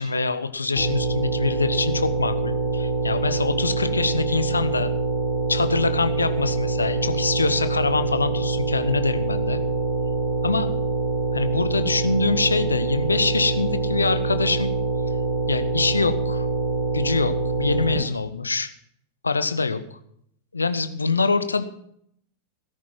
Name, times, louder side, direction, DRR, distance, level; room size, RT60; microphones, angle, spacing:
voice 1, 0.0-4.9 5.5-9.6 10.4-10.7 11.3-14.7 15.5-16.5 16.9-18.7 19.2-19.8 20.5-21.6, left 4 dB, 75° left, 11 dB, 1.1 m, -24 dB
sound 1, 0.8-18.0, right 3 dB, 5° left, 6.7 m, -25 dB
17.5 x 10.0 x 5.9 m, 0.71 s
figure-of-eight pair, 90°, 0 cm